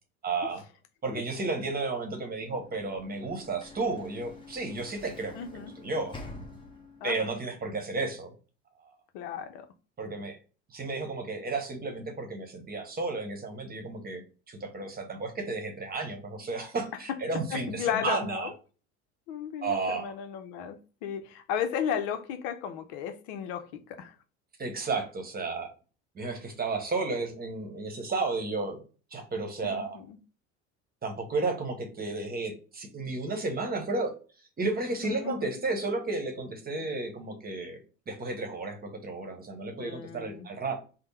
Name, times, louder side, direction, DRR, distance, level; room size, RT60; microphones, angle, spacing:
voice 1, 0.2-0.6 1.0-6.2 7.0-8.3 8.8-8.9 10.0-10.4 10.7-18.5 19.6-20.1 24.6-25.7 26.1-28.8 29.1-30.0 31.0-34.1 34.6-37.8 38.1-40.7, right 3 dB, 25° right, 1.0 m, -33 dB
Sliding door / Slam, 2.4-7.2, left 2 dB, 15° left, 1.0 m, -47 dB
voice 2, 5.3-5.7 7.0-7.3 9.1-9.7 17.1-17.2 17.5-18.5 19.3-24.1 29.6-30.2 35.0-35.6 39.8-40.5, left 8 dB, 70° left, 0.6 m, -34 dB
3.5 x 2.0 x 4.2 m
hypercardioid pair, 85°, 34 cm